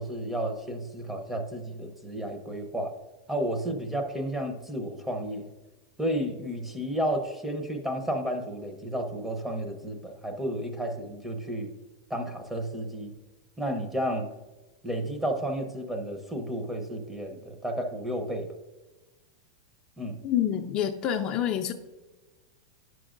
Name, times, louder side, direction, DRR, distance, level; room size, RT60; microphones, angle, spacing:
voice 1, 0.0-2.9 3.3-5.5 6.0-11.7 12.1-13.1 13.6-14.3 14.8-18.5 20.0-20.2, right 1 dB, 5° right, 4 dB, 0.8 m, -32 dB
voice 2, 20.2-21.7, left 10 dB, 35° left, 5 dB, 0.5 m, -27 dB
9.8 x 6.1 x 2.5 m, 1.2 s
supercardioid pair, 135°, 2 cm